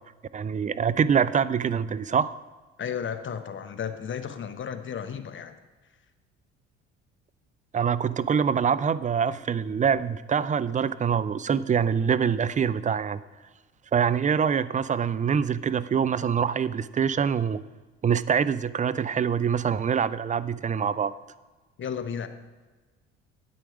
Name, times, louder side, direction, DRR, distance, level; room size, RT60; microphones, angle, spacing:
voice 1, 0.3-2.3 7.7-13.2 13.9-17.6 18.0-21.1, right 7 dB, 25° right, 15 dB, 0.4 m, -25 dB
voice 2, 2.8-5.5 21.8-22.3, left 7 dB, 40° left, 10 dB, 1.0 m, -33 dB
9.1 x 7.8 x 4.9 m, 1.3 s
hypercardioid pair, 60°, 32 cm